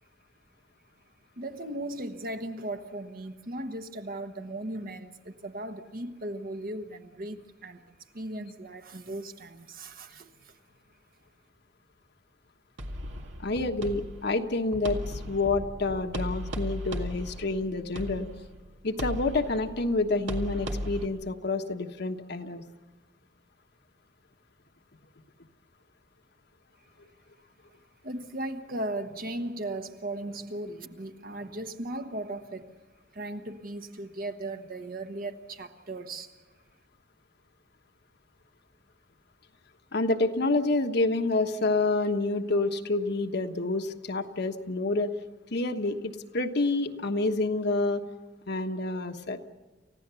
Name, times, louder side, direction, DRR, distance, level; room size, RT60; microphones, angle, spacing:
voice 1, 1.4-7.8 8.1-10.5 28.0-32.8 33.1-36.3, right 1 dB, 50° right, 1.3 m, -37 dB
sound 1, 12.8-21.1, equal, 80° right, 2.1 m, -37 dB
voice 2, 13.4-18.3 18.8-22.6 39.9-45.1 45.5-48.0 48.5-49.5, left 2 dB, 60° left, 1.3 m, -28 dB
29.5 x 15.5 x 7.0 m
head